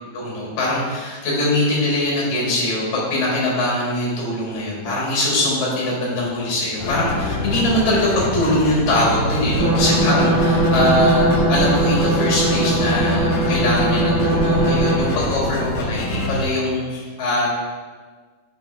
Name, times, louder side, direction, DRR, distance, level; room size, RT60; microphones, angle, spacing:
voice 1, 0.1-17.5, left 1 dB, 45° left, -5 dB, 2.5 m, -22 dB
sound 1, 6.8-16.5, left 1 dB, 70° left, 2.7 m, -25 dB
sound 2, 9.5-15.3, right 2 dB, 35° right, 2.0 m, -20 dB
6.8 x 6.2 x 3.4 m, 1.5 s
omnidirectional pair, 4.8 m